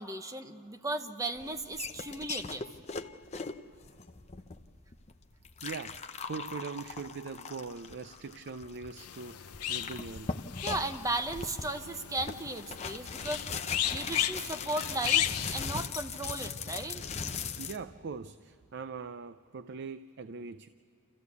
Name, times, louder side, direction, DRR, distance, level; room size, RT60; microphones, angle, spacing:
voice 1, 0.0-2.6 10.6-13.4 13.9-17.0, right 2 dB, 15° right, 6 dB, 0.8 m, -36 dB
sound 1, 1.4-17.8, left 5 dB, 30° left, 0.6 m, -40 dB
voice 2, 5.6-10.4 17.6-20.7, right 4 dB, 50° right, 11 dB, 0.4 m, -41 dB
sound 2, 9.0-15.9, left 12 dB, 90° left, 0.6 m, -35 dB
28.0 x 15.0 x 8.2 m, 2.6 s
head